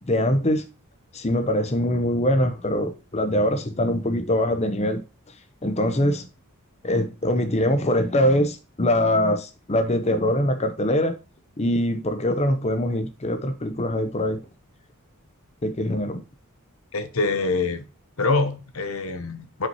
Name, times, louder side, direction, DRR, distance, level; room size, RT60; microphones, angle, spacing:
voice 1, 0.1-0.7 1.1-5.0 5.6-6.3 6.8-11.2 11.6-14.4 15.6-16.2, left 1 dB, 30° left, 0.8 m, -23 dB
voice 2, 16.9-17.8 18.2-19.7, left 3 dB, 65° left, 0.9 m, -25 dB
8.6 x 5.5 x 3.0 m
head